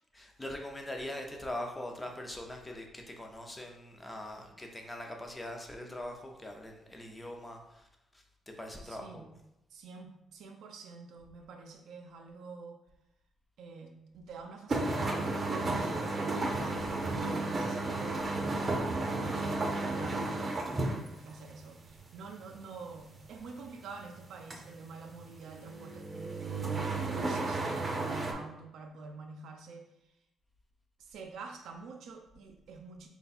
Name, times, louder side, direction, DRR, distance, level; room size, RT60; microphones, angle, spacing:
voice 1, 0.1-9.3, left 1 dB, 15° left, 2 dB, 0.6 m, -42 dB
voice 2, 8.8-9.3 9.7-12.8 13.6-18.8 19.2-20.8 21.1-29.9 31.0-33.1, right 4 dB, 75° right, 2 dB, 0.4 m, -48 dB
sound 1, 14.7-21.6 21.9-24.6 24.9-28.3, right 2 dB, 35° right, 0.6 m, -33 dB
3.3 x 2.2 x 4.1 m, 0.88 s
cardioid pair, 90°, 0 cm